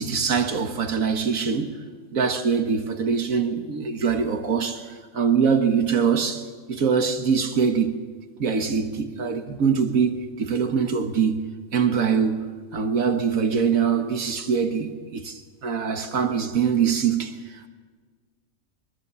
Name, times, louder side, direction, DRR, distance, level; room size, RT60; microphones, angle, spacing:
voice 1, 0.0-1.7 2.1-8.0 8.4-17.7, right 6 dB, 85° right, 1.9 m, -23 dB
24.0 x 21.5 x 7.1 m
omnidirectional pair, 1.4 m